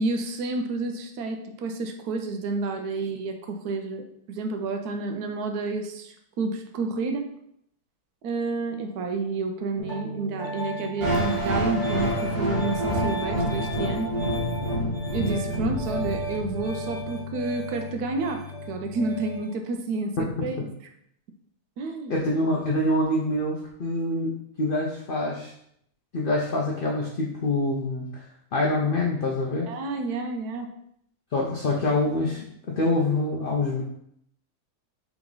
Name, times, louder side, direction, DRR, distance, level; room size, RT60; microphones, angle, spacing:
voice 1, 0.0-7.3 8.2-14.2 15.1-20.6 21.8-22.2 29.7-30.7, right 3 dB, 75° right, 5 dB, 1.0 m, -30 dB
Piano, 9.8-19.5, equal, 20° left, 1.6 m, -34 dB
sound 1, 11.0-17.0, equal, 50° right, 0.8 m, -28 dB
voice 2, 22.1-24.3 24.6-25.5 26.1-28.3 28.5-29.7 31.3-33.8, left 2 dB, 90° left, -2 dB, 0.4 m, -25 dB
3.5 x 3.0 x 3.8 m, 0.72 s
omnidirectional pair, 1.7 m